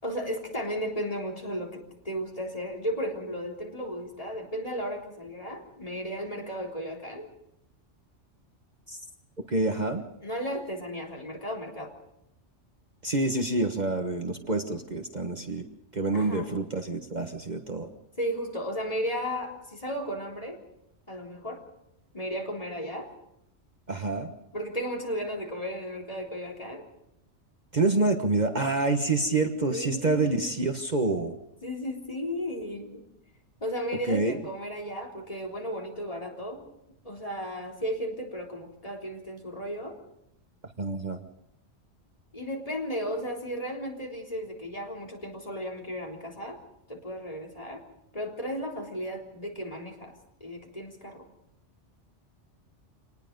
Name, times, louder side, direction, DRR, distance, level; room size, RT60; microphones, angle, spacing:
voice 1, 0.0-7.3 10.2-11.9 16.1-16.5 18.2-20.6 21.1-21.6 22.1-23.1 24.5-26.9 29.7-30.5 31.6-33.0 33.6-36.7 37.0-40.0 42.3-46.6 46.9-47.8 48.1-50.1 50.4-51.2, equal, 30° left, 1 dB, 3.8 m, -34 dB
voice 2, 9.5-10.0 13.0-15.7 15.9-17.9 23.9-24.3 27.7-31.3 34.1-34.4 40.8-41.2, right 2 dB, 40° right, 4 dB, 1.4 m, -27 dB
26.5 x 19.5 x 5.3 m, 0.81 s
omnidirectional pair, 1.2 m